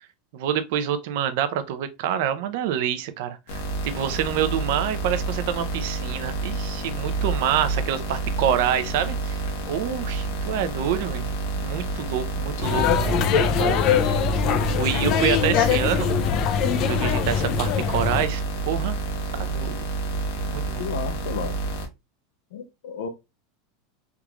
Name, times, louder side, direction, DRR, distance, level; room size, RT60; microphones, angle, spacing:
voice 1, 0.3-9.4 9.7-11.3 11.6-13.8 14.5-16.1 16.9-19.0 19.4-19.8 20.5-20.8, right 9 dB, 60° right, 0.5 m, -27 dB
sound 1, 3.5-21.9, right 3 dB, 70° left, 1.0 m, -29 dB
sound 2, 12.6-18.3, left 8 dB, 40° left, 0.4 m, -22 dB
voice 2, 20.8-21.5 22.5-23.1, left 6 dB, 85° left, 0.6 m, -32 dB
3.5 x 2.4 x 2.9 m
supercardioid pair, 155°, 0 cm